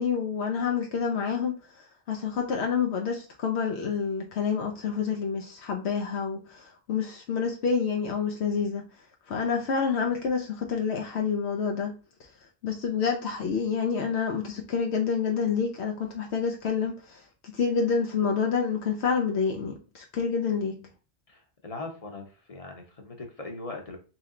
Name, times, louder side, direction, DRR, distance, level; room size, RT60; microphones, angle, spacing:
voice 1, 0.0-8.8 9.3-11.9 12.6-20.8, left 6 dB, 75° left, 0.9 m, -28 dB
voice 2, 21.3-22.2 22.5-24.0, left 2 dB, 35° left, 0.9 m, -40 dB
3.1 x 3.0 x 3.7 m
omnidirectional pair, 1.1 m